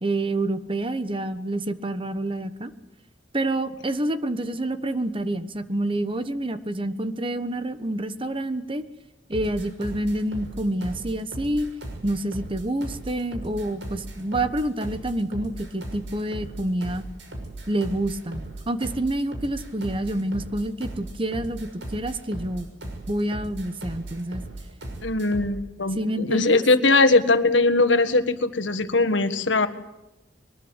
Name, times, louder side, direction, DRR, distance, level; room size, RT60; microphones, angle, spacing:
voice 1, 0.0-2.7 3.3-8.8 9.3-11.7 12.0-17.1 17.7-22.7 23.1-24.4 25.9-26.6, right 1 dB, 30° right, 11 dB, 1.3 m, -28 dB
sound 1, 9.3-25.6, right 1 dB, 80° right, 6.2 m, -37 dB
voice 2, 25.0-29.7, left 3 dB, 90° left, 10 dB, 1.7 m, -20 dB
22.5 x 21.0 x 8.2 m, 0.95 s
head